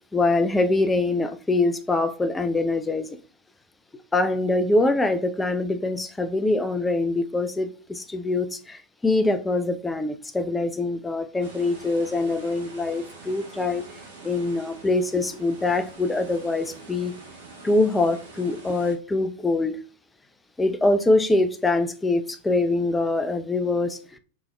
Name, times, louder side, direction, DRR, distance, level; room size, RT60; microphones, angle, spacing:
voice 1, 0.0-3.2 4.1-13.9 14.2-17.1 17.6-19.7 20.6-24.2, left 2 dB, 10° left, 0.4 m, -24 dB
sound 1, 11.4-19.0, right 3 dB, 55° right, 1.1 m, -45 dB
4.0 x 2.2 x 3.2 m
figure-of-eight pair, 90°, 0 cm